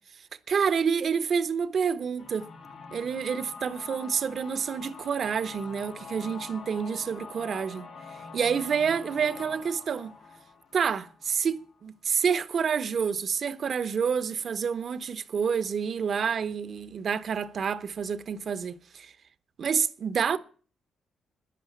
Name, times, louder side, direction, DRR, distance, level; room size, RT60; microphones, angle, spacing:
voice 1, 0.5-2.5 2.9-10.2 10.7-19.1 19.6-20.4, right 6 dB, 60° right, 0.9 m, -28 dB
sound 1, 2.2-11.9, left 4 dB, 75° left, 5.3 m, -45 dB
10.5 x 9.3 x 8.4 m
supercardioid pair, 60°, 0 cm